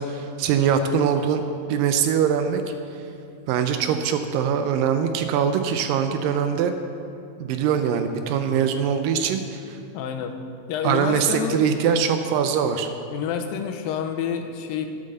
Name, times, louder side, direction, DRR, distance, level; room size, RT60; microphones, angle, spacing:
voice 1, 0.0-1.4 1.7-2.6 3.5-6.7 7.4-9.8 10.8-12.9, right 7 dB, 80° right, 8 dB, 2.1 m, -22 dB
voice 2, 9.9-10.4 10.7-12.0 13.1-14.9, left 8 dB, 80° left, 6 dB, 2.3 m, -28 dB
9.0 x 7.7 x 6.5 m, 2.6 s
omnidirectional pair, 4.2 m